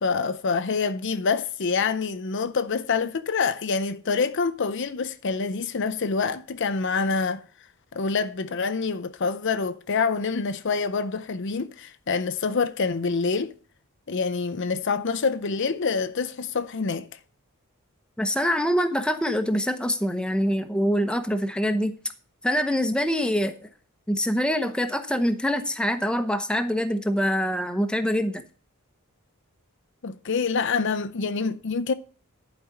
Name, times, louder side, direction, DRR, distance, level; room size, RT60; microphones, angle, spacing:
voice 1, 0.0-7.4 7.9-13.5 14.1-17.1 30.0-31.9, left 4 dB, 55° left, 0.6 m, -26 dB
voice 2, 18.2-21.9 22.4-23.5 24.1-28.4, equal, 5° left, 0.8 m, -24 dB
11.0 x 5.1 x 7.2 m
head